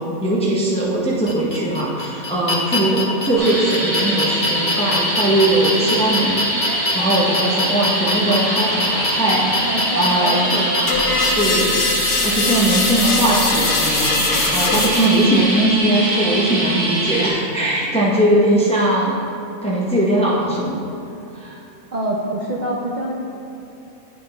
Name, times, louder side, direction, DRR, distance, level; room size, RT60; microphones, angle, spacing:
voice 1, 0.0-6.4 6.9-10.5 11.3-11.7 12.2-19.1 19.6-20.8 21.3-21.6, right 1 dB, 10° left, -4 dB, 0.4 m, -20 dB
sound 1, 1.3-11.3, left 2 dB, 45° left, 0.7 m, -24 dB
sound 2, 3.4-17.3, right 1 dB, 35° right, 1.1 m, -23 dB
voice 2, 9.6-11.1 11.4-11.8 21.9-23.1, right 1 dB, 60° right, -3 dB, 0.4 m, -25 dB
sound 3, 10.9-15.3, left 3 dB, 75° left, 1.4 m, -21 dB
10.0 x 3.6 x 3.3 m, 2.8 s
omnidirectional pair, 1.6 m